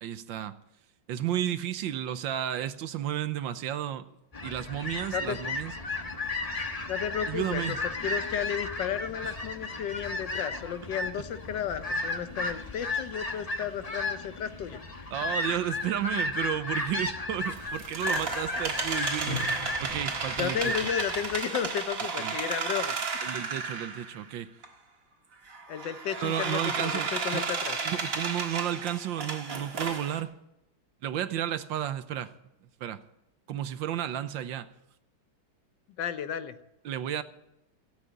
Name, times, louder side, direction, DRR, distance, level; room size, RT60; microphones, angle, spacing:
voice 1, 0.0-0.6 1.1-4.1 4.4-5.7 7.3-7.8 9.2-9.4 15.1-20.9 22.2-22.4 23.2-24.6 26.2-27.4 27.8-30.3 31.0-32.3 32.6-33.0 33.5-34.7 36.8-37.2, right 11 dB, 75° right, 1.4 m, -33 dB
sound 1, 4.3-21.4, left 2 dB, 25° left, 1.1 m, -34 dB
voice 2, 6.9-7.8 8.0-14.8 20.4-23.0 25.7-27.8 36.0-36.6, left 9 dB, 65° left, 1.4 m, -33 dB
sound 2, 17.5-24.2 24.6-24.7 25.5-30.2, right 4 dB, 45° right, 2.0 m, -33 dB
16.0 x 8.2 x 9.9 m
omnidirectional pair, 2.2 m